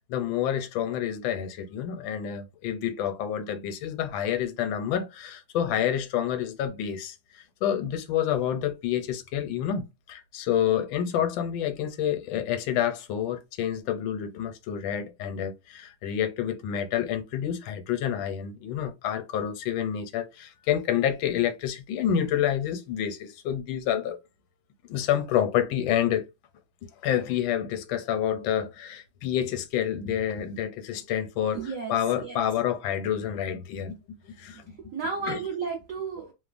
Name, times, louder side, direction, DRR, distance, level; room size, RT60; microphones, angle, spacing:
voice 1, 0.1-24.2 24.9-26.2 27.0-34.0 34.4-34.6 35.3-35.4, left 10 dB, 85° left, 1.3 m, -28 dB
voice 2, 31.5-32.4 34.9-36.3, right 5 dB, 60° right, 0.9 m, -33 dB
3.2 x 2.0 x 2.4 m
omnidirectional pair, 2.1 m